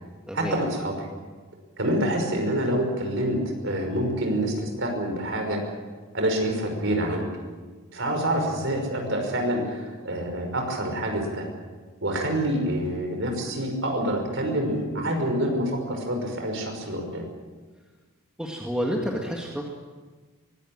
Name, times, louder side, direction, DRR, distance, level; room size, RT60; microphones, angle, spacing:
voice 1, 0.3-1.1 1.8-5.7 6.1-7.3 7.9-11.4 12.0-17.3, right 1 dB, 55° right, 3 dB, 5.7 m, -27 dB
voice 2, 18.4-19.7, equal, 5° right, -1 dB, 1.9 m, -29 dB
23.5 x 17.5 x 8.9 m, 1.4 s
head